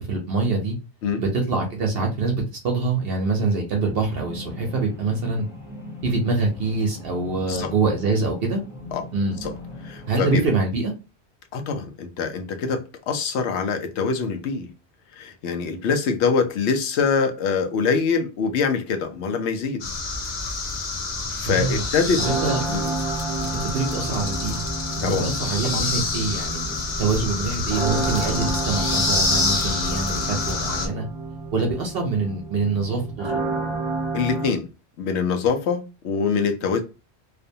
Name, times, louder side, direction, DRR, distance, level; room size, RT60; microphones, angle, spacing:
voice 1, 0.1-0.8 1.2-5.5 6.0-8.6 9.1-9.4 10.1-10.9 21.5-21.9 22.2-22.6 23.4-24.6 25.0-31.1 31.5-33.4, right 3 dB, 65° right, 0.8 m, -25 dB
sound 1, 3.9-10.3, left 1 dB, 5° right, 0.4 m, -39 dB
voice 2, 9.8-10.4 11.5-14.7 15.1-19.8 21.4-22.2 22.7-22.8 25.0-25.4 25.7-25.8 34.1-34.7 35.0-36.8, left 5 dB, 80° left, 0.8 m, -24 dB
sound 2, 19.8-30.9, left 3 dB, 50° left, 0.6 m, -27 dB
sound 3, 22.2-34.5, right 3 dB, 30° right, 0.9 m, -30 dB
2.4 x 2.1 x 2.6 m
omnidirectional pair, 1.1 m